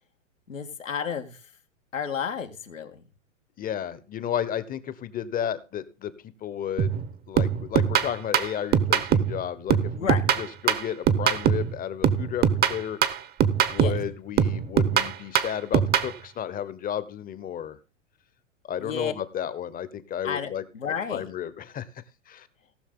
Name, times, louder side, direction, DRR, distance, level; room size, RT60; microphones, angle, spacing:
voice 1, 0.5-1.4 1.9-3.0 9.9-10.2 13.8-14.0 18.8-19.1 20.2-21.3, left 7 dB, 90° left, 5 dB, 1.8 m, -31 dB
voice 2, 3.6-6.1 6.4-10.1 10.4-13.0 13.7-17.8 18.7-20.6 21.1-21.9 22.3-22.5, left 9 dB, 20° left, 15 dB, 1.0 m, -33 dB
sound 1, 6.8-7.1 7.4-9.4 9.7-11.7 12.0-14.1 14.4-16.1, right 8 dB, 25° right, 1.0 m, -22 dB
18.0 x 6.3 x 3.8 m, 0.32 s
hypercardioid pair, 105°, 38 cm